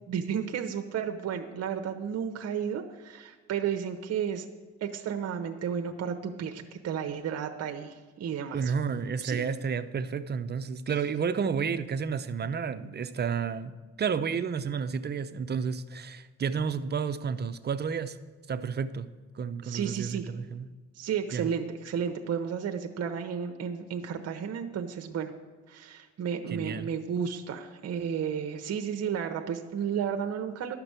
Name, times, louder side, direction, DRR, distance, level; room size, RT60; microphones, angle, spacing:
voice 1, 0.0-4.4 4.8-8.7 9.2-9.4 19.6-20.2 21.0-25.3 25.7-30.8, right 7 dB, 55° right, 0.9 m, -32 dB
voice 2, 8.5-18.2 18.5-20.7 21.3-21.5 26.5-26.9, right 6 dB, 35° right, 0.6 m, -31 dB
12.0 x 5.9 x 8.1 m
cardioid pair, 90°, 30 cm